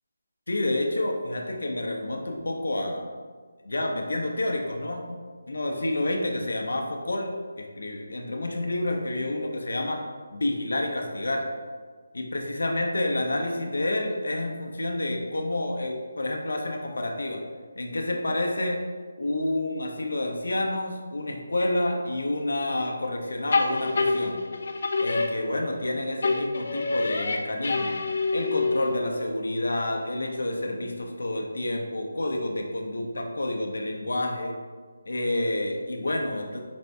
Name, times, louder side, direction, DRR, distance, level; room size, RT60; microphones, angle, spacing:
voice 1, 0.5-3.1 3.6-5.2 5.5-10.0 10.3-11.5 12.1-17.4 17.8-18.8 19.2-24.4 25.0-28.0 28.3-34.6 35.1-36.6, left 1 dB, 80° left, 2 dB, 0.7 m, -29 dB
sound 1, 23.5-25.9 26.2-29.1, left 3 dB, 45° left, 0.4 m, -27 dB
5.2 x 2.6 x 3.3 m, 1.5 s
hypercardioid pair, 175°, 0 cm